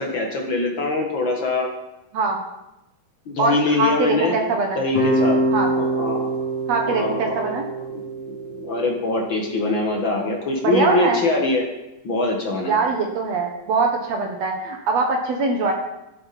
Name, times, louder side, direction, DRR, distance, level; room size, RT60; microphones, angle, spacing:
voice 1, 0.0-1.7 3.2-4.4 4.7-5.4 5.8-6.3 6.9-11.7 12.0-12.8, left 2 dB, 60° left, 1 dB, 1.2 m, -23 dB
voice 2, 3.4-4.8 5.5-5.7 6.7-7.6 10.6-11.2 12.7-15.7, right 4 dB, 60° right, 2 dB, 2.0 m, -22 dB
sound 1, 4.9-10.0, right 2 dB, 40° left, 4.3 m, -25 dB
13.0 x 11.5 x 4.2 m, 0.93 s
omnidirectional pair, 4.3 m